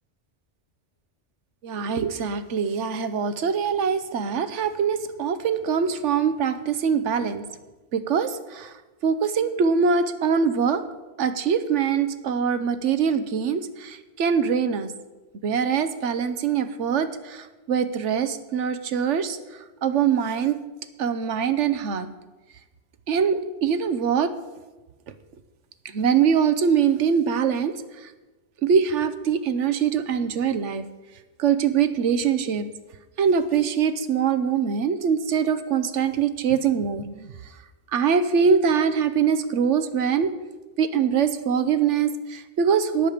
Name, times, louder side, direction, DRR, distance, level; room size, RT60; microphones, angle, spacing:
voice 1, 1.6-7.5 7.9-8.7 9.0-10.8 11.2-14.9 15.4-20.6 21.0-22.1 23.1-24.3 25.8-28.1 28.6-30.8 31.4-32.7 33.2-37.3 37.9-40.3 40.8-43.1, right 6 dB, 85° right, 12 dB, 1.2 m, -23 dB
18.5 x 7.4 x 5.0 m, 1.2 s
omnidirectional pair, 1.2 m